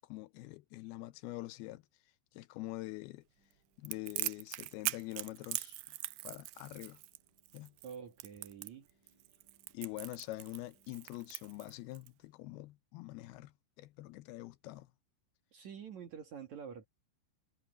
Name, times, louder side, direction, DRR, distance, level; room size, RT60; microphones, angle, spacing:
voice 1, 0.1-1.8 2.3-3.2 3.8-5.8 6.2-7.0 7.5-7.7 9.7-13.5 13.8-14.9, left 18 dB, 75° left, 2.5 m, -45 dB
sound 1, 3.4-11.0, equal, 45° left, 8.9 m, -77 dB
Crackle, 3.8-12.1, right 19 dB, 90° right, 2.2 m, -41 dB
voice 2, 7.8-8.9 15.5-16.9, right 7 dB, 55° right, 2.5 m, -47 dB
omnidirectional pair, 4.9 m